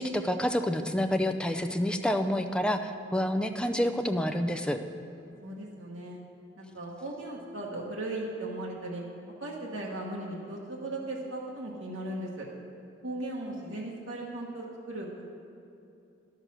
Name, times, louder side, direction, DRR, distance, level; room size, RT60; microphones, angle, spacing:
voice 1, 0.0-4.8, equal, 5° left, 5 dB, 0.4 m, -28 dB
voice 2, 5.1-6.2 6.6-9.0 9.4-12.5 13.0-15.3, right 1 dB, 80° right, -3 dB, 1.3 m, -37 dB
11.5 x 6.6 x 6.1 m, 2.7 s
head